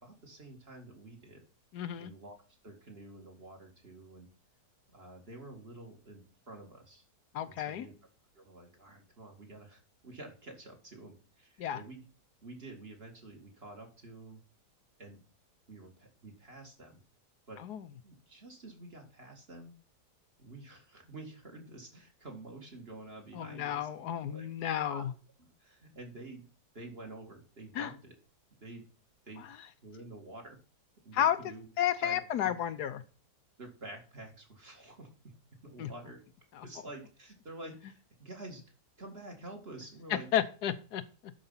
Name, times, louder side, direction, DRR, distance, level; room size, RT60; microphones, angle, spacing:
voice 1, 0.0-1.4 2.0-2.4 2.6-4.3 4.9-7.0 7.5-7.9 8.3-12.1 12.4-14.4 15.0-15.2 15.7-17.0 17.5-17.6 18.0-19.7 20.4-23.9 24.2-25.1 25.4-26.4 26.7-28.1 28.6-28.9 29.3-29.5 29.8-30.6 31.0-31.7 32.0-32.5 33.6-35.3 35.6-36.2 36.6-38.6 39.0-40.3, right 2 dB, 35° right, 2 dB, 2.3 m, -49 dB
voice 2, 1.7-2.1 7.3-7.9 11.6-11.8 17.6-17.9 23.3-25.1 27.7-27.9 31.1-31.4 31.8-33.0 35.8-35.9 36.6-36.7 40.1-41.3, left 10 dB, 75° left, 11 dB, 1.3 m, -32 dB
11.5 x 5.1 x 5.6 m, 0.36 s
omnidirectional pair, 1.7 m